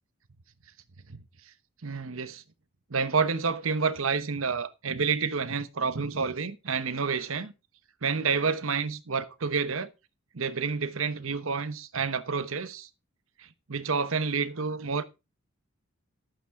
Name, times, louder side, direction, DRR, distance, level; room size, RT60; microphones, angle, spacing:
voice 1, 1.8-2.4 2.9-7.5 8.0-9.9 10.3-12.9 13.4-15.0, right 5 dB, 75° right, 1.0 m, -29 dB
11.5 x 9.1 x 3.6 m
head